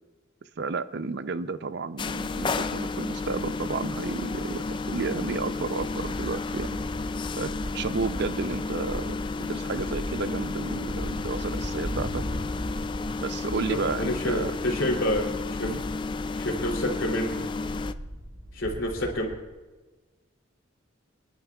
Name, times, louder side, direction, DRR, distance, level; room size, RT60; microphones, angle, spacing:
voice 1, 0.6-6.8 7.4-12.2 13.2-14.5 15.6-15.8, right 4 dB, 60° right, 13 dB, 0.5 m, -32 dB
sound 1, 2.0-17.9, left 3 dB, 25° left, 0.3 m, -32 dB
sound 2, 5.8-19.4, equal, 75° right, 2.1 m, -38 dB
voice 2, 13.7-15.7 16.4-17.5 18.5-19.3, left 1 dB, 70° left, 0 dB, 3.0 m, -28 dB
27.0 x 11.0 x 2.4 m, 1.3 s
head